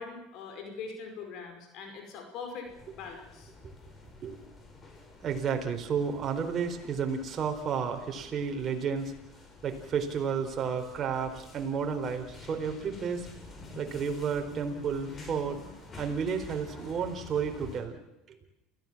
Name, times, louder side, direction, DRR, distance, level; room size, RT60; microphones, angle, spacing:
voice 1, 0.0-3.5, left 5 dB, 60° left, 4 dB, 5.2 m, -42 dB
sound 1, 2.6-17.8, left 3 dB, 30° left, 6.0 m, -49 dB
voice 2, 5.2-9.1 9.6-13.3 13.7-15.6 16.0-18.0, right 6 dB, 40° right, 4 dB, 4.2 m, -32 dB
28.5 x 16.0 x 7.4 m, 0.97 s
hypercardioid pair, 90°, 0 cm